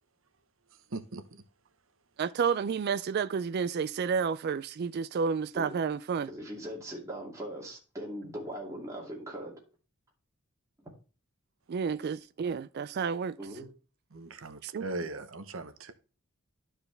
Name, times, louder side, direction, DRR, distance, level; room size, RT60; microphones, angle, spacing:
voice 1, 0.7-1.4 12.5-12.6 14.1-15.9, right 2 dB, 65° right, 0.9 m, -40 dB
voice 2, 2.2-6.3 11.7-13.4 14.6-14.8, right 6 dB, 50° right, 0.3 m, -30 dB
voice 3, 6.3-9.5 10.8-10.9 13.4-13.7, right 1 dB, 15° right, 2.4 m, -40 dB
12.0 x 4.6 x 3.3 m
head